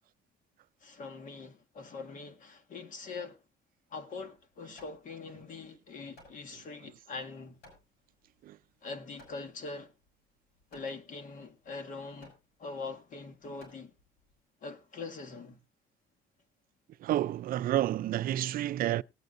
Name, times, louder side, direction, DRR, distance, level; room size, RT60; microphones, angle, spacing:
voice 1, 0.8-3.4 3.9-7.6 8.8-9.9 10.7-12.3 12.6-13.9 14.6-15.6, left 4 dB, 50° left, 1.7 m, -43 dB
Hammer, 4.2-14.4, left 1 dB, 75° left, 6.0 m, -61 dB
voice 2, 17.0-19.0, right 13 dB, 60° right, 0.5 m, -30 dB
18.5 x 8.9 x 2.5 m
cardioid pair, 110°, 17 cm